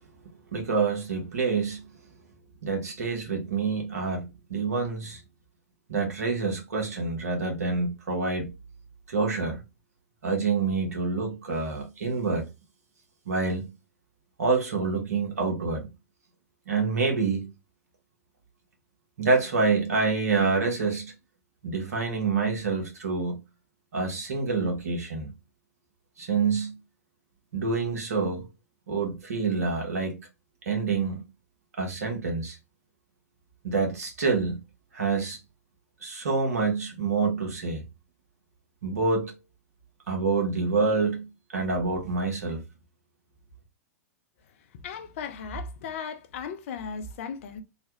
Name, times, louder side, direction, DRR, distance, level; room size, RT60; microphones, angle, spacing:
voice 1, 0.5-1.8 2.6-5.2 5.9-8.5 9.1-9.6 10.2-12.5 13.2-13.7 14.4-15.9 16.7-17.5 19.2-21.1 21.6-23.4 23.9-25.3 26.2-26.7 27.5-28.4 28.9-30.2 30.6-31.2 31.8-32.6 33.6-34.6 34.9-35.4 36.0-37.8 38.8-39.3 40.1-41.3 41.5-42.6, right 4 dB, 75° right, 1.2 m, -27 dB
voice 2, 44.6-47.6, left 5 dB, 55° left, 0.6 m, -36 dB
3.2 x 2.2 x 2.9 m
figure-of-eight pair, 105°, 9 cm